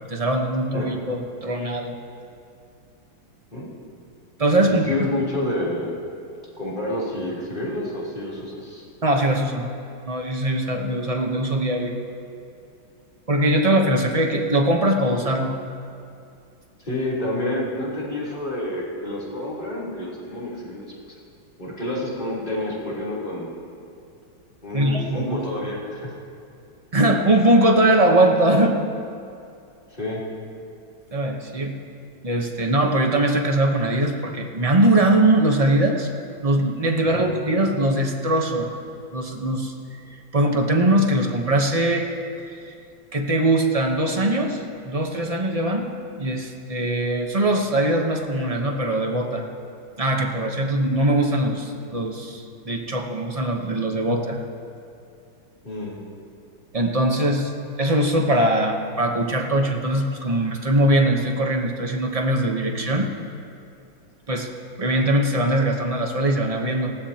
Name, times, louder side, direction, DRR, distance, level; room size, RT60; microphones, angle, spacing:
voice 1, 0.1-2.0 4.4-4.9 9.0-9.7 10.0-12.0 13.3-15.5 24.7-25.4 26.9-28.8 31.1-31.7 32.2-36.1 36.4-38.7 39.1-39.7 40.3-42.1 42.5-42.8 43.1-45.9 46.2-49.4 50.0-54.4 56.7-57.5 57.8-63.1 64.3-64.5 64.8-66.9, right 1 dB, 30° right, 2 dB, 0.6 m, -21 dB
voice 2, 4.6-6.0 6.6-8.8 16.8-20.9 21.6-23.5 24.6-26.0 30.0-30.2 37.0-37.3 55.6-56.0, left 1 dB, 25° left, -7 dB, 3.6 m, -28 dB
19.5 x 17.0 x 2.9 m, 2.5 s
omnidirectional pair, 2.2 m